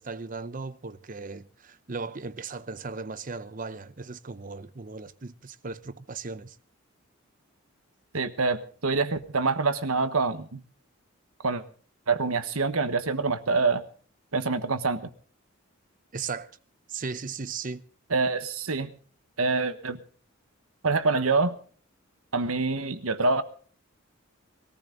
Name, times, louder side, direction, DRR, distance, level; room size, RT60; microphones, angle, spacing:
voice 1, 0.0-6.6 16.1-16.6 16.9-17.8, right 4 dB, 40° right, 0.7 m, -37 dB
voice 2, 8.1-10.6 11.4-11.6 12.1-13.8 14.3-15.0 18.1-18.9 19.4-20.0 20.8-21.6 22.3-23.4, right 3 dB, 80° right, 1.3 m, -26 dB
21.0 x 14.5 x 3.9 m
head